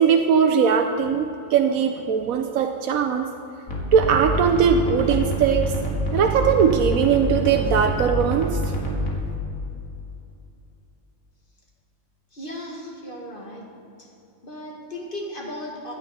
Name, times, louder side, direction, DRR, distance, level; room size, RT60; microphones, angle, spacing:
voice 1, 0.0-3.3 3.9-5.7 6.1-8.7, right 7 dB, 90° right, 5 dB, 1.1 m, -20 dB
sound 1, 3.7-9.1, equal, 80° left, 2.4 m, -26 dB
voice 2, 12.3-13.7 14.0-14.1 14.4-15.9, left 1 dB, 40° left, -2 dB, 2.2 m, -36 dB
16.0 x 10.5 x 4.3 m, 2.7 s
omnidirectional pair, 1.4 m